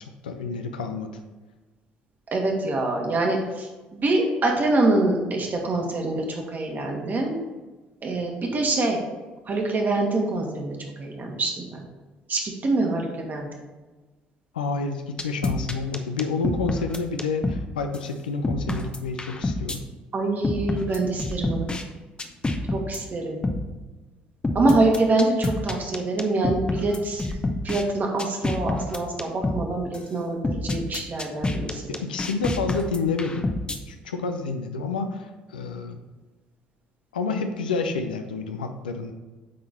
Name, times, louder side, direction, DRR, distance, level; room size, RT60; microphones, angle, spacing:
voice 1, 0.2-1.1 14.5-19.8 31.9-33.6 33.9-36.0 37.1-39.1, left 4 dB, 80° left, 6 dB, 0.5 m, -29 dB
voice 2, 2.3-7.3 8.0-9.0 9.5-11.8 12.3-13.5 20.1-21.7 22.7-23.4 24.5-27.4 27.6-31.8, right 2 dB, 40° right, 1 dB, 1.6 m, -25 dB
sound 1, 15.2-17.6 17.9-18.0 18.4-19.8 20.4-21.8 22.2-23.0 23.4-23.6 24.4-27.8 28.2-29.6 29.9-30.0 30.4-33.8, left 2 dB, 20° left, 0.8 m, -27 dB
8.5 x 3.8 x 4.2 m, 1.2 s
figure-of-eight pair, 55°, 5 cm